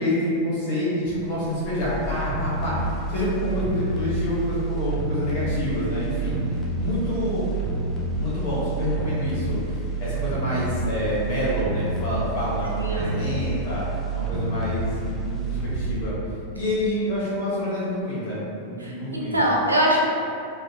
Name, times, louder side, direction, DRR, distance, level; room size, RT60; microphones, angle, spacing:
voice 1, 0.0-6.4 6.8-7.5 8.2-9.6 10.0-16.1 16.5-19.5, left 1 dB, 50° left, -8 dB, 1.1 m, -27 dB
sound 1, 1.1-17.1 17.5-17.6, right 2 dB, 15° right, 0.5 m, -29 dB
voice 2, 12.8-13.1 18.8-20.1, equal, 80° right, -4 dB, 0.4 m, -23 dB
2.6 x 2.3 x 2.6 m, 2.5 s
figure-of-eight pair, 90°, 0 cm